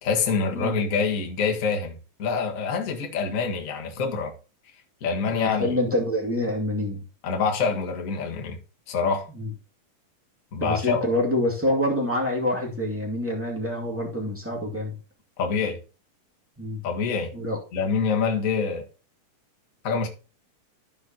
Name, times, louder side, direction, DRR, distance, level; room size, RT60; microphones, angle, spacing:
voice 1, 0.0-4.3 5.0-5.8 7.2-8.6 8.9-9.3 10.5-11.0 15.4-15.8 16.8-17.3 17.7-18.8 19.8-20.1, left 5 dB, 55° left, 0.8 m, -26 dB
voice 2, 5.2-7.0 9.3-9.5 10.6-15.0 16.6-16.8 17.3-17.6, left 1 dB, 5° right, 1.6 m, -26 dB
14.5 x 5.1 x 2.9 m
omnidirectional pair, 4.0 m